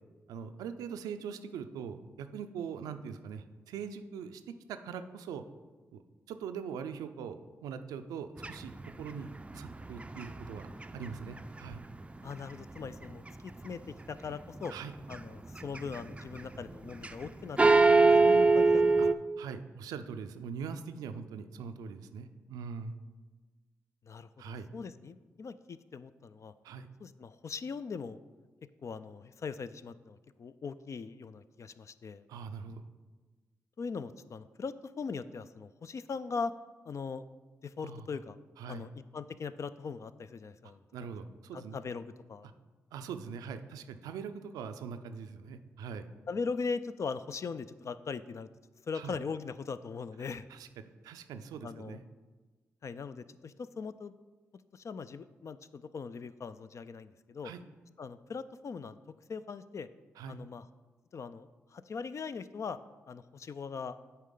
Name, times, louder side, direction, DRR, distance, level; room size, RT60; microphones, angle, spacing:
voice 1, 0.3-5.4 5.9-6.0 6.3-8.7 9.0-9.3 9.5-10.7 10.9-11.8 14.7-14.9 19.0-19.1 19.4-22.9 24.4-24.7 26.6-26.9 32.3-32.9 37.8-38.1 38.6-38.9 40.9-41.8 42.4-42.5 42.9-46.1 48.9-49.2 50.5-52.0 57.4-57.6 60.2-60.4, right 6 dB, 85° right, 9 dB, 0.4 m, -42 dB
sound 1, 8.4-12.5 12.8-13.7 14.2-14.7 15.0-17.3 17.6-19.1, right 3 dB, 20° right, 0.4 m, -25 dB
voice 2, 12.2-14.7 15.1-17.6 18.2-18.8 24.1-26.5 27.0-28.2 28.8-32.2 33.8-36.5 36.9-37.2 37.6-38.4 38.7-40.8 41.5-42.5 46.3-48.5 48.9-50.5 51.6-52.0 52.8-54.1 54.7-57.5 58.0-59.0 59.3-59.9 60.3-60.6 61.1-62.8 63.1-64.0, left 5 dB, 55° left, 13 dB, 0.4 m, -40 dB
8.1 x 4.5 x 3.8 m, 1.3 s
supercardioid pair, 40°, 6 cm